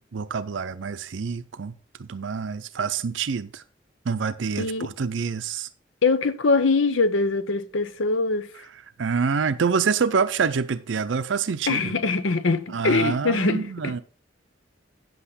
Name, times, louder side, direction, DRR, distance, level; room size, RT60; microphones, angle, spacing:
voice 1, 0.1-1.7 2.0-3.6 4.1-5.7 9.0-11.9 12.7-14.0, right 5 dB, 70° right, 0.5 m, -26 dB
voice 2, 4.6-4.9 6.0-8.5 11.7-13.9, left 3 dB, 85° left, 0.8 m, -23 dB
9.2 x 7.9 x 4.1 m
head